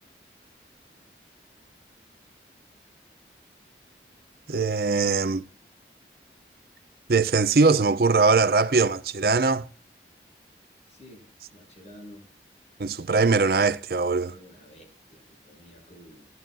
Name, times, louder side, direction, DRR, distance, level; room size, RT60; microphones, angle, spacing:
voice 1, 4.5-5.4 7.1-9.7 12.8-14.3, right 4 dB, 55° right, 0.6 m, -21 dB
voice 2, 10.9-12.3 14.3-16.3, equal, 40° left, 6.4 m, -50 dB
19.0 x 11.0 x 2.5 m
head